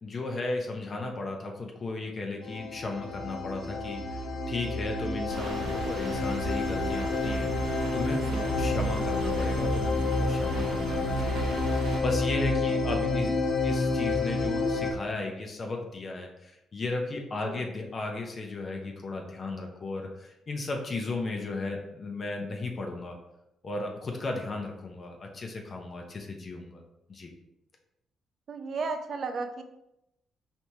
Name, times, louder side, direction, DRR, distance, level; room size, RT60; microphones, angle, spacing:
voice 1, 0.0-13.3 13.6-23.2 23.6-26.8 27.1-27.3, left 3 dB, 40° left, 2 dB, 0.6 m, -35 dB
sound 1, 2.4-14.9, left 2 dB, 80° left, 0.8 m, -29 dB
sound 2, 5.3-12.0, right 1 dB, 90° right, 1.0 m, -39 dB
voice 2, 8.2-8.7 12.7-12.8 17.4-17.6 28.5-29.6, right 4 dB, 55° right, 6 dB, 0.4 m, -35 dB
4.4 x 3.3 x 2.8 m, 0.85 s
cardioid pair, 90°, 0 cm